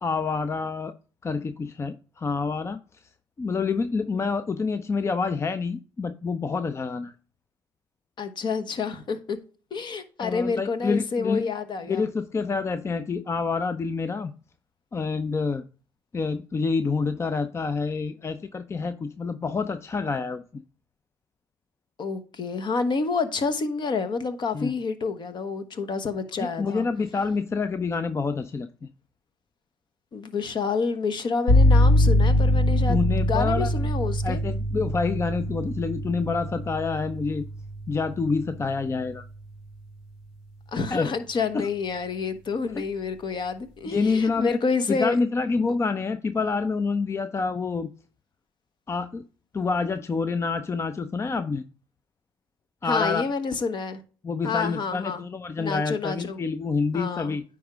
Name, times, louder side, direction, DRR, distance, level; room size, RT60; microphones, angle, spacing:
voice 1, 0.0-0.9 1.2-2.8 3.4-7.1 10.2-11.4 11.8-14.3 14.9-15.6 16.1-20.6 24.5-24.7 26.4-28.7 32.9-33.7 34.2-37.4 37.9-39.3 40.9-41.1 41.5-41.7 43.9-44.6 44.9-47.9 48.9-49.2 49.5-51.6 52.8-53.3 54.2-57.4, left 4 dB, 25° left, 0.5 m, -27 dB
voice 2, 8.2-9.4 9.7-12.1 22.0-26.9 30.1-34.4 40.7-45.2 52.8-54.0 54.4-55.2 55.6-56.4 56.9-57.4, left 4 dB, 50° left, 1.1 m, -28 dB
sound 1, 31.5-39.2, equal, 80° left, 2.0 m, -23 dB
9.4 x 3.6 x 5.0 m
supercardioid pair, 70°, 10 cm